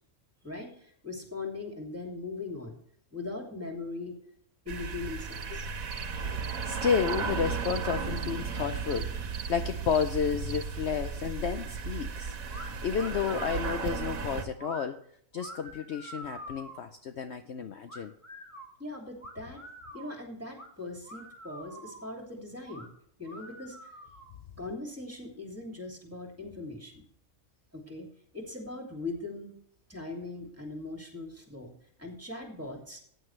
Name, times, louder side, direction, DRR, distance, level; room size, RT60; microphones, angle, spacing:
voice 1, 0.4-2.8 3.1-4.2 4.6-5.7 18.8-19.6 19.9-22.9 23.2-23.9 24.6-27.0 27.7-28.1 28.3-29.5 29.9-31.7 32.0-33.0, left 3 dB, 10° right, 1 dB, 2.7 m, -40 dB
sound 1, 4.7-14.4, right 5 dB, 80° right, 1.5 m, -35 dB
sound 2, 5.3-5.5 5.9-6.1 6.4-6.7 7.1-7.2 7.6-7.8 8.2-8.3 8.9-9.0 9.3-9.5 9.9-10.1 10.5-10.6, right 8 dB, 60° right, 1.2 m, -43 dB
voice 2, 6.6-12.3 12.8-15.0 15.3-18.1, left 7 dB, 60° left, 7 dB, 0.9 m, -31 dB
sound 3, 12.5-12.7 13.0-13.7 14.6-14.9 15.3-16.9 17.9-18.7 19.2-20.1 20.6-20.7 21.0-22.1 22.6-22.9 23.2-24.4, right 1 dB, 10° left, 2.1 m, -46 dB
14.5 x 9.1 x 3.3 m, 0.65 s
omnidirectional pair, 1.4 m